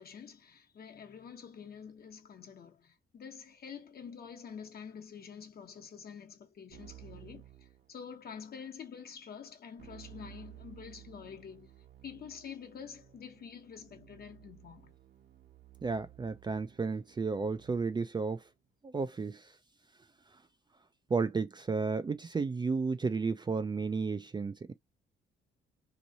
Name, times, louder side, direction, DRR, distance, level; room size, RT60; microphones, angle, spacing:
voice 1, 0.0-11.7 12.0-14.9, left 7 dB, 50° left, 1.1 m, -47 dB
Keyboard (musical), 6.7-8.4 9.8-18.2, right 13 dB, 60° right, 1.0 m, -55 dB
voice 2, 15.8-18.4 18.8-19.5 21.1-24.7, right 4 dB, 20° right, 0.4 m, -33 dB
3.1 x 2.6 x 4.0 m
cardioid pair, 90°, 20 cm